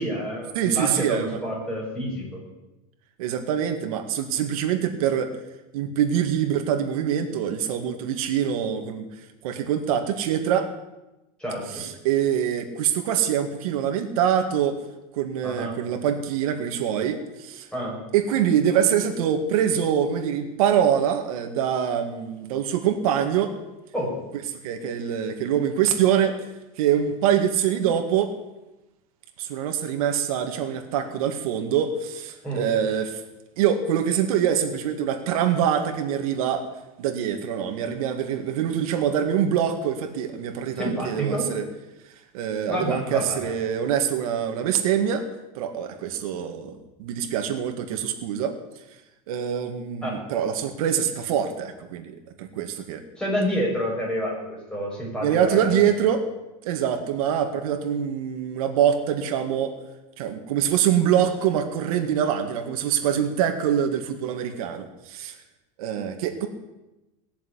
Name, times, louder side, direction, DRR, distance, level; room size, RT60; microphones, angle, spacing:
voice 1, 0.0-2.4 11.4-11.9 15.4-15.8 17.7-18.0 23.9-24.2 32.4-32.6 40.7-41.5 42.7-43.5 50.0-50.2 53.2-55.8, equal, 5° left, -3 dB, 6.6 m, -28 dB
voice 2, 0.6-1.4 3.2-5.3 5.7-9.1 9.4-10.7 11.7-14.8 15.1-17.7 18.1-23.5 24.6-26.4 26.8-28.3 29.4-33.2 33.6-36.6 37.0-41.6 42.3-45.2 45.6-48.6 49.3-53.0 55.2-56.3 56.7-59.8 60.2-65.3 65.8-66.5, right 9 dB, 80° right, 5 dB, 2.1 m, -24 dB
19.5 x 7.1 x 10.0 m, 0.99 s
supercardioid pair, 135°, 18 cm